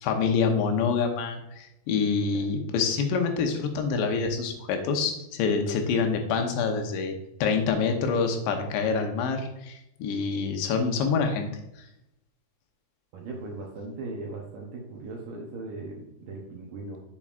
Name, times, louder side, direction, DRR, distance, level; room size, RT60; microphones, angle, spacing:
voice 1, 0.0-7.2 7.4-11.5, left 5 dB, 90° left, 4 dB, 3.2 m, -26 dB
voice 2, 13.1-17.0, right 3 dB, 75° right, -1 dB, 2.1 m, -38 dB
8.8 x 7.0 x 2.5 m, 0.86 s
omnidirectional pair, 4.9 m